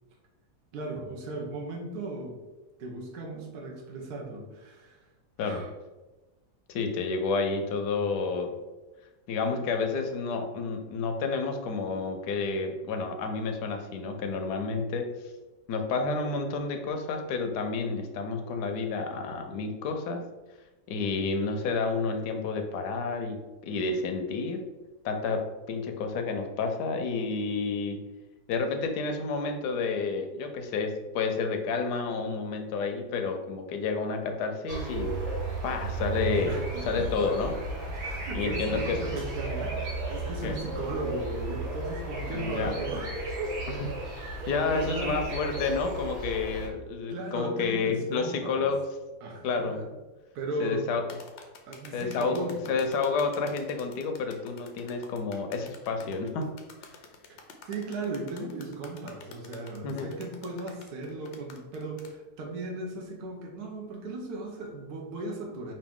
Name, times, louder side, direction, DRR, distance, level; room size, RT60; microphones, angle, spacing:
voice 1, 0.7-2.4 2.8-5.1 5.4-5.7 36.5-43.7 44.3-45.3 47.1-48.7 49.2-49.9 50.3-50.9 51.6-52.6 57.3-65.7, right 2 dB, 70° right, 0 dB, 1.3 m, -37 dB
voice 2, 6.7-8.5 9.3-15.1 15.7-20.3 20.9-23.4 23.6-24.6 25.0-28.0 28.5-35.4 35.6-36.6 36.9-37.6 38.3-39.0 40.4-40.5 42.3-42.7 44.1-48.8 49.4-49.8 50.6-51.0 51.9-56.4 59.8-60.1, left 4 dB, 85° left, 5 dB, 1.2 m, -30 dB
sound 1, 34.7-46.7, right 2 dB, 85° right, 1.8 m, -34 dB
sound 2, 51.1-62.1, left 5 dB, 60° left, 0.7 m, -49 dB
5.2 x 2.7 x 3.6 m, 1.1 s
omnidirectional pair, 1.7 m